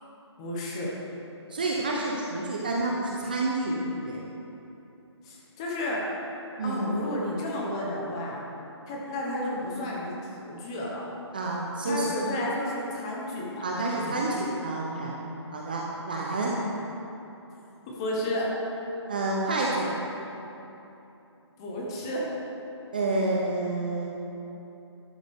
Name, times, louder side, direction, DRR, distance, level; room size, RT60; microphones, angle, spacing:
voice 1, 0.4-0.9 5.2-6.1 6.6-8.4 8.9-11.0 11.9-13.6 14.0-14.2 17.9-18.5 21.6-22.2, left 1 dB, 10° left, -3 dB, 1.0 m, -32 dB
voice 2, 1.5-3.8 4.0-4.2 6.6-6.8 11.3-12.1 13.6-15.1 15.5-16.5 19.1-19.9 22.9-24.1, right 2 dB, 20° right, -3 dB, 0.6 m, -29 dB
13.5 x 12.0 x 3.6 m, 3.0 s
hypercardioid pair, 175°, 15 cm